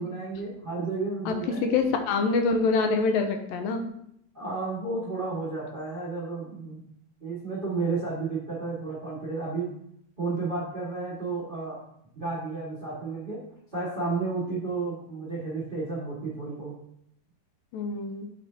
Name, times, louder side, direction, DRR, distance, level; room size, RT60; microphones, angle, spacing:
voice 1, 0.0-1.7 4.3-6.8 7.2-9.7 10.2-11.8 12.1-13.4 13.7-16.7, right 3 dB, 55° right, -7 dB, 0.5 m, -32 dB
voice 2, 1.6-3.9 17.7-18.3, left 4 dB, 80° left, 5 dB, 2.3 m, -25 dB
6.7 x 6.3 x 2.8 m, 0.72 s
omnidirectional pair, 4.2 m